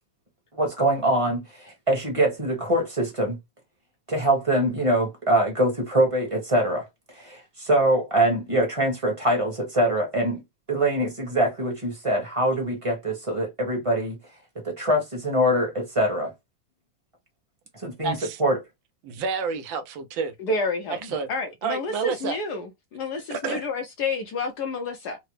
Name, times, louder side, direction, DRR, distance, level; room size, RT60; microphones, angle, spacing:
voice 1, 0.5-3.4 4.1-6.9 7.1-10.4 10.7-14.2 14.5-16.3 17.7-18.6, right 1 dB, 20° right, 0.9 m, -23 dB
voice 2, 18.0-18.4 19.0-20.3 21.0-21.3 21.6-22.4 23.3-23.7, right 5 dB, 80° right, 1.3 m, -29 dB
voice 3, 20.4-25.2, left 3 dB, 70° left, 1.0 m, -29 dB
3.8 x 2.1 x 3.1 m
omnidirectional pair, 2.2 m